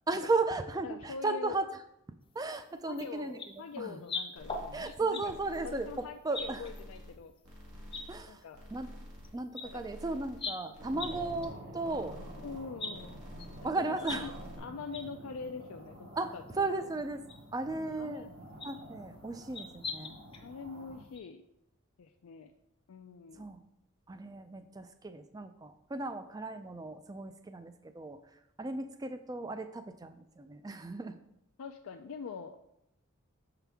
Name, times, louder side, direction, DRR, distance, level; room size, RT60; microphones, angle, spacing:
voice 1, 0.1-1.7 2.3-3.4 3.7-4.0 4.7-6.7 8.1-8.4 8.7-8.9 9.3-12.2 13.6-14.3 16.2-17.2 17.5-18.3 18.6-20.2 23.3-23.6 24.1-28.2 28.6-31.2, right 3 dB, 15° right, 9 dB, 0.3 m, -35 dB
voice 2, 0.8-1.6 2.8-5.3 5.6-7.3 7.9-8.6 9.6-9.8 12.4-13.1 13.6-13.7 14.0-14.3 14.6-16.9 17.7-18.3 19.1-19.2 20.4-21.4 22.0-22.5 22.9-23.5 31.6-32.6, left 5 dB, 75° left, 5 dB, 0.4 m, -44 dB
sound 1, 2.9-3.1 3.4-3.5 4.0-5.2 5.5-5.7 6.3-6.8 7.4-7.5 7.9-8.0 9.2-9.3 9.5-9.6 10.4-10.6 11.0-11.1 11.4-11.5 11.8-11.9 12.8-12.9 13.4-14.2 14.4-14.5 14.9-15.0 15.4-15.5 16.5-16.6 17.3-17.4 18.6-18.8 19.5-20.4 20.7-20.8 21.1-21.2, left 4 dB, 25° left, 0.6 m, -39 dB
sound 2, 4.4-4.9 5.2-6.1 6.3-7.2 7.4-8.3 8.5-9.3 9.6-10.5 10.7-11.5 11.8-12.6 12.9-13.7 14.0-14.6, equal, 85° right, 1.8 m, -49 dB
sound 3, 10.7-21.1, right 1 dB, 50° right, 1.0 m, -49 dB
6.8 x 5.8 x 3.5 m, 0.83 s
head